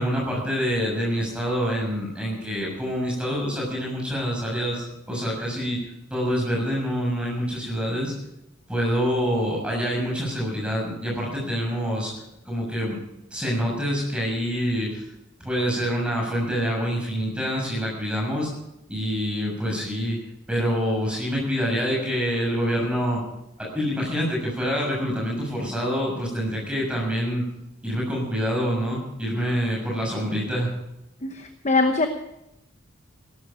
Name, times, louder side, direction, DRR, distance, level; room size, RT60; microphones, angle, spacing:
voice 1, 0.0-5.8 6.1-8.1 8.7-12.1 12.4-13.0 13.3-15.0 15.4-18.5 18.9-20.2 20.5-23.2 23.6-27.4 27.8-30.7, equal, 5° right, -3 dB, 6.8 m, -26 dB
voice 2, 31.6-32.1, left 3 dB, 35° left, 6 dB, 1.0 m, -20 dB
16.5 x 13.0 x 5.1 m, 0.88 s
head